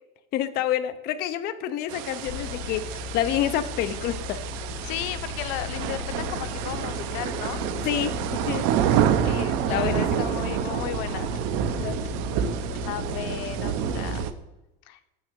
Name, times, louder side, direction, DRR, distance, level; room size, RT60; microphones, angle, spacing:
voice 1, 0.3-4.4 7.8-8.7 9.7-10.3 11.8-12.0, left 11 dB, 30° left, 10 dB, 0.5 m, -28 dB
sound 1, 1.9-14.3, right 9 dB, 60° right, 0.8 m, -28 dB
sound 2, 2.2-14.3, left 6 dB, 70° left, 2.0 m, -37 dB
voice 2, 4.8-7.9 9.2-12.0 12.8-14.3 14.9-15.0, left 12 dB, 85° left, 11 dB, 0.9 m, -35 dB
8.3 x 6.3 x 6.8 m, 0.99 s
cardioid pair, 165°, 31 cm